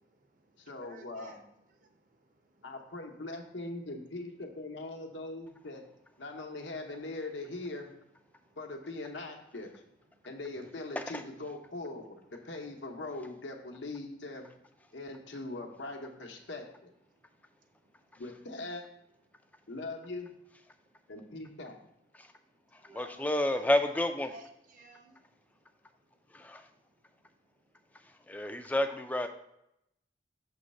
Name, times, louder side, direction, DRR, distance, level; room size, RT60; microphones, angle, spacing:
voice 1, 0.0-2.7 8.3-8.6 10.1-10.6 12.4-12.9 17.1-18.2 19.3-19.6 20.7-21.1 22.2-24.1 24.3-26.5, right 1 dB, 45° right, 5 dB, 0.7 m, -58 dB
voice 2, 0.6-1.4 2.6-5.8 6.2-7.9 8.6-9.7 10.2-14.5 14.9-16.9 18.2-18.8 19.7-20.3 21.1-21.8, left 2 dB, 80° left, 3 dB, 0.9 m, -41 dB
voice 3, 22.7-24.3 26.3-26.7 28.3-29.3, left 1 dB, 10° left, 7 dB, 0.3 m, -30 dB
6.4 x 3.1 x 5.3 m, 0.82 s
head